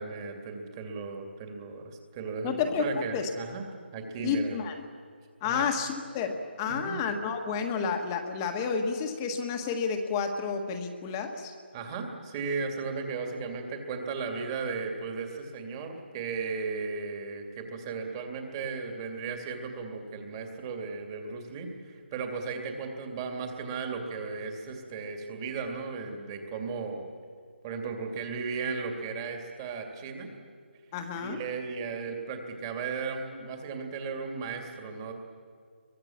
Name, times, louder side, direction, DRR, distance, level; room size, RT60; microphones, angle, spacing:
voice 1, 0.0-3.6 3.9-4.6 5.4-5.7 6.7-7.0 11.7-27.1 27.6-30.3 31.2-35.1, right 4 dB, 20° right, 3 dB, 2.6 m, -36 dB
voice 2, 2.4-3.3 4.2-4.8 5.4-11.5 30.9-31.4, left 6 dB, 20° left, 5 dB, 1.6 m, -30 dB
27.5 x 23.0 x 7.3 m, 2.1 s
hypercardioid pair, 165°, 6 cm